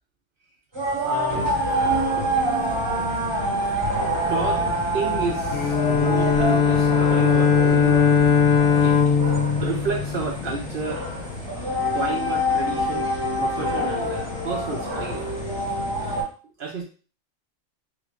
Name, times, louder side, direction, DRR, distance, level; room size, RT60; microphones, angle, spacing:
sound 1, 0.7-16.2, right 1 dB, 25° right, 0.9 m, -27 dB
voice 1, 1.0-1.5 4.3-4.6 4.9-8.0 8.8-9.0 9.6-11.0 11.9-13.1 13.4-15.2 16.6-16.8, right 4 dB, 60° right, 2 dB, 0.6 m, -31 dB
sound 2, 1.3-16.2, left 4 dB, 30° left, 1.1 m, -34 dB
Bowed string instrument, 5.5-10.7, left 6 dB, 65° left, 0.5 m, -19 dB
3.1 x 2.4 x 3.4 m, 0.37 s
omnidirectional pair, 1.4 m